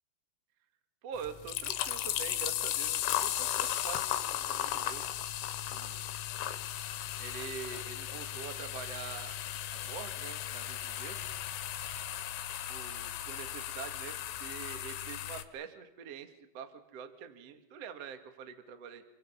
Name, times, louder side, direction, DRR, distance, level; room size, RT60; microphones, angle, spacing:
voice 1, 1.0-5.1 5.7-6.0 7.2-9.4 9.7-11.2 12.7-19.0, right 7 dB, 70° right, 8 dB, 1.5 m, -45 dB
sound 1, 1.2-15.4, left 12 dB, 80° left, 3.6 m, -36 dB
28.5 x 24.5 x 5.6 m, 0.88 s
omnidirectional pair, 5.7 m